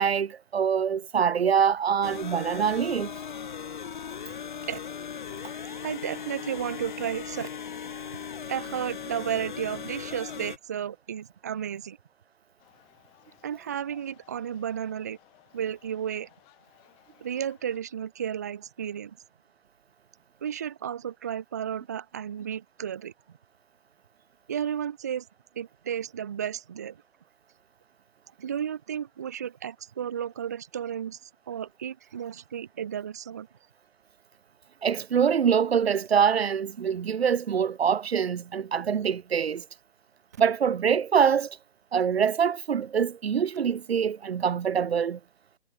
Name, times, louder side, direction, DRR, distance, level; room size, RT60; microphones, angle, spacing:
voice 1, 0.0-3.1 34.8-39.6 40.4-41.6 41.9-45.2, right 7 dB, 60° right, 0.9 m, -24 dB
sound 1, 2.0-10.6, left 7 dB, 45° left, 0.7 m, -38 dB
voice 2, 5.6-7.5 8.5-12.0 13.4-15.2 15.5-16.3 17.2-19.2 20.4-23.1 24.5-25.3 25.5-27.0 28.4-33.5, right 9 dB, 15° right, 0.7 m, -33 dB
sound 2, 12.6-17.8, left 32 dB, 15° left, 6.4 m, -61 dB
hypercardioid pair, 170°, 34 cm